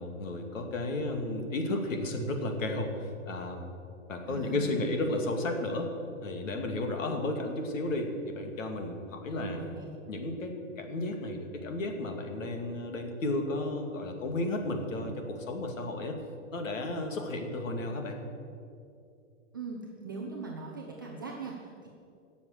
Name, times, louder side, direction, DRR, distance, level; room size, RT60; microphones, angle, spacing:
voice 1, 0.0-3.7 4.1-6.0 6.2-9.6 10.1-16.2 16.5-18.2, left 2 dB, 80° left, 4 dB, 2.4 m, -33 dB
voice 2, 4.3-4.8 9.4-9.9 19.5-21.9, right 4 dB, 15° right, -2 dB, 0.4 m, -40 dB
18.0 x 7.1 x 6.6 m, 2.5 s
hypercardioid pair, 175°, 39 cm